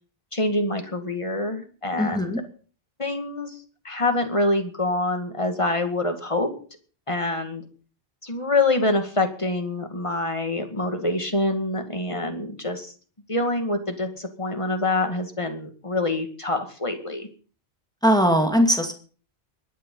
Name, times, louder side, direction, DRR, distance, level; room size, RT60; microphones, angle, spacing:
voice 1, 0.3-2.3 3.0-3.6 3.8-6.5 7.1-7.6 8.2-12.9 13.3-17.3, left 2 dB, 30° left, 6 dB, 2.2 m, -25 dB
voice 2, 2.0-2.4 18.0-18.9, equal, 5° left, 4 dB, 2.2 m, -20 dB
22.0 x 9.4 x 5.6 m, 0.42 s
omnidirectional pair, 1.1 m